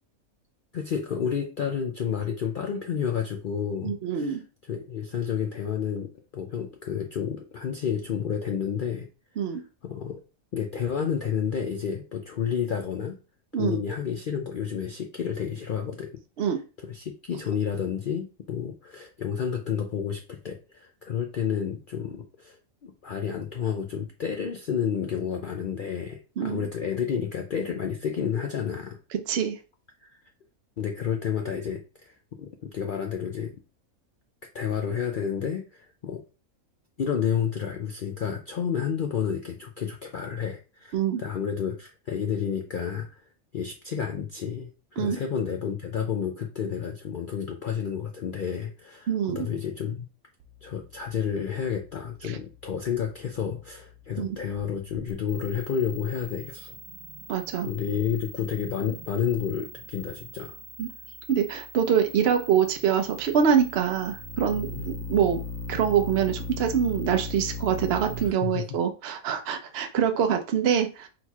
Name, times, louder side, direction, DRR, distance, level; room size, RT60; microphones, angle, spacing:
voice 1, 0.7-9.1 9.5-10.2 10.5-13.2 13.6-16.1 16.5-16.6 16.8-29.0 30.0-30.1 30.8-33.5 34.5-36.2 37.0-43.2 43.5-50.1 50.6-56.8 57.6-60.6 64.7-64.9 68.2-68.7, left 7 dB, 65° left, 3 dB, 0.5 m, -30 dB
voice 2, 3.8-4.4 9.4-9.6 13.5-13.8 16.4-16.6 26.4-26.6 29.3-29.6 40.9-41.2 45.0-45.2 49.1-49.5 54.2-54.4 57.3-57.7 60.8-60.9 61.3-65.4 65.7-71.1, right 8 dB, 55° right, 6 dB, 0.8 m, -25 dB
sound 1, 50.4-68.3, left 2 dB, 90° right, 1.1 m, -40 dB
4.3 x 4.0 x 2.3 m, 0.32 s
omnidirectional pair, 1.5 m